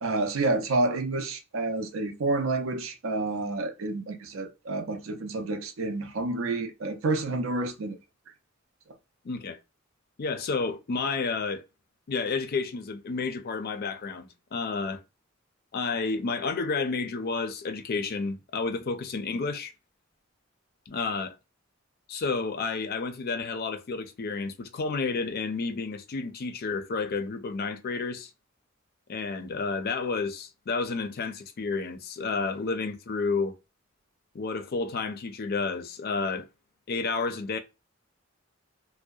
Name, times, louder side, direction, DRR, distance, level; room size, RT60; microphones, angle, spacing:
voice 1, 0.0-8.0, right 2 dB, 85° right, 0.5 m, -29 dB
voice 2, 9.2-9.6 10.2-11.6 12.1-15.0 15.7-19.7 20.9-21.3 22.1-28.3 29.1-33.5 34.3-36.5 36.9-37.6, left 4 dB, 50° left, 0.4 m, -31 dB
2.7 x 2.1 x 2.2 m
head